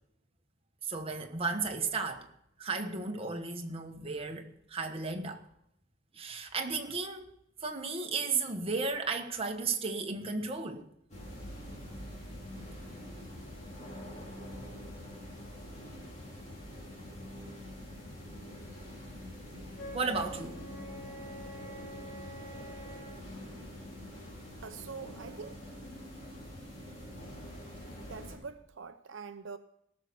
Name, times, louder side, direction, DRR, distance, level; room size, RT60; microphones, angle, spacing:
voice 1, 0.8-2.3 2.6-5.4 6.1-7.3 7.6-10.8 19.9-20.6, right 4 dB, 30° right, 1.3 m, -34 dB
sound 1, 11.1-28.4, left 1 dB, 35° left, 4.2 m, -45 dB
Wind instrument woodwind instrument, 19.7-23.3, equal, 65° left, 3.4 m, -46 dB
voice 2, 24.6-25.6 26.0-26.1 28.0-29.6, right 5 dB, 70° right, 0.7 m, -44 dB
17.5 x 6.6 x 6.8 m
head